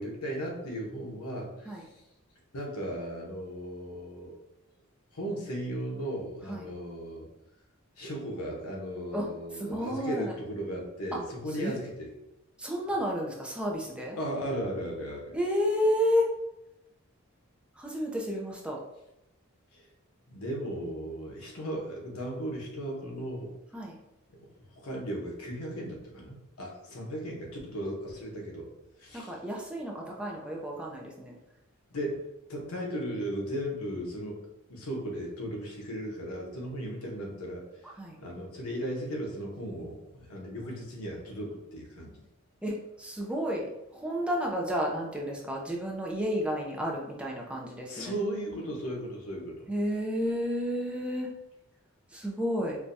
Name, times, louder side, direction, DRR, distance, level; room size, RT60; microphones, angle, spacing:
voice 1, 0.0-1.9 2.5-4.4 5.1-7.3 8.0-12.1 14.2-15.3 19.7-19.9 20.3-23.6 24.7-28.7 29.0-29.4 31.9-32.2 32.5-34.4 34.7-37.6 38.2-42.1 47.9-49.7, equal, 80° left, -1 dB, 0.9 m, -36 dB
voice 2, 9.5-10.3 11.6-11.8 12.6-14.2 15.3-16.3 17.8-18.8 23.7-24.0 29.1-31.3 38.0-38.2 42.6-43.6 43.9-48.1 49.7-51.3 52.1-52.8, equal, 5° right, -2 dB, 0.4 m, -31 dB
4.5 x 2.2 x 2.6 m, 0.88 s
head